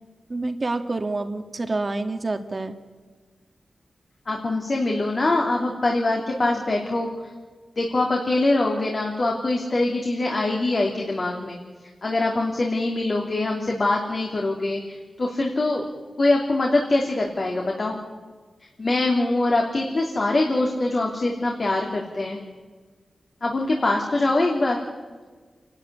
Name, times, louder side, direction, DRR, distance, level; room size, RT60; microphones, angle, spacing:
voice 1, 0.3-2.8, right 2 dB, 40° right, 7 dB, 2.0 m, -27 dB
voice 2, 4.3-7.1 7.8-11.6 12.0-15.9 16.2-18.0 18.8-22.4 23.4-24.8, left 2 dB, 50° left, 0 dB, 3.1 m, -23 dB
27.5 x 12.0 x 9.9 m, 1.4 s
wide cardioid pair, 75°, 0 cm